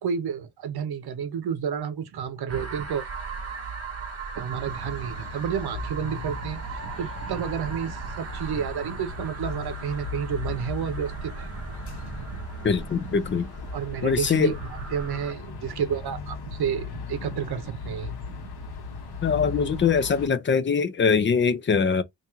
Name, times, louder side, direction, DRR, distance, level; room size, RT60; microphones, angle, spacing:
voice 1, 0.0-3.0 4.3-11.5 12.0-12.3 13.7-18.5 18.9-19.0, right 7 dB, 65° right, 0.8 m, -31 dB
sound 1, 2.5-15.3, right 5 dB, 35° right, 1.0 m, -38 dB
sound 2, 4.7-20.3, left 4 dB, 65° left, 1.1 m, -38 dB
voice 2, 12.6-13.5 14.0-14.5 19.2-22.0, left 6 dB, 30° left, 0.4 m, -22 dB
2.9 x 2.6 x 3.5 m
cardioid pair, 110°, 42 cm